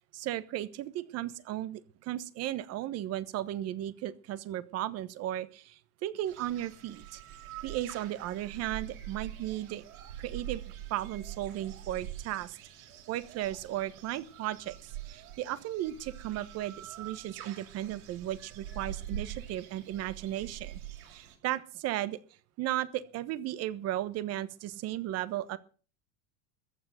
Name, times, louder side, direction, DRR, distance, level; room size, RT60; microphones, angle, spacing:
voice 1, 0.1-7.2 7.6-9.8 10.2-12.6 13.1-20.8 21.1-22.2 22.6-25.6, right 13 dB, 35° right, 15 dB, 1.3 m, -35 dB
sound 1, 6.3-21.4, right 10 dB, 80° right, 6.9 m, -45 dB
14.5 x 8.9 x 7.8 m, 0.39 s
supercardioid pair, 150°, 42 cm